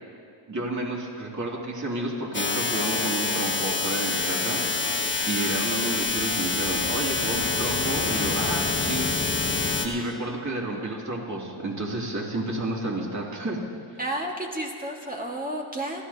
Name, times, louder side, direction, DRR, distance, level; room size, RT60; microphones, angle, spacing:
voice 1, 0.5-4.6 5.2-9.1 9.8-13.6, right 2 dB, 35° right, -2 dB, 2.7 m, -30 dB
sound 1, 2.3-9.9, left 4 dB, 25° left, 0.9 m, -26 dB
voice 2, 14.0-16.0, right 1 dB, 15° right, -1 dB, 1.8 m, -31 dB
29.0 x 11.5 x 2.9 m, 2.3 s
cardioid pair, 90°, 50 cm